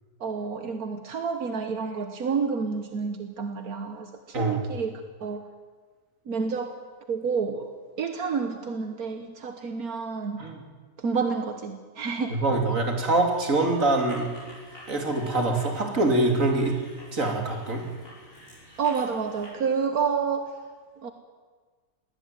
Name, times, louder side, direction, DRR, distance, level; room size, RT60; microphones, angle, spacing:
voice 1, 0.2-4.9 5.2-5.5 6.3-6.8 7.1-10.4 11.0-12.6 18.8-20.4 21.0-21.1, right 5 dB, 75° right, 7 dB, 1.7 m, -29 dB
voice 2, 4.3-4.6 10.4-10.6 12.3-14.3 14.9-16.7 17.1-17.8, right 2 dB, 60° right, 2 dB, 3.4 m, -24 dB
sound 1, 13.2-19.5, left 1 dB, 60° left, 6.4 m, -49 dB
21.0 x 17.0 x 9.3 m, 1.5 s
omnidirectional pair, 1.6 m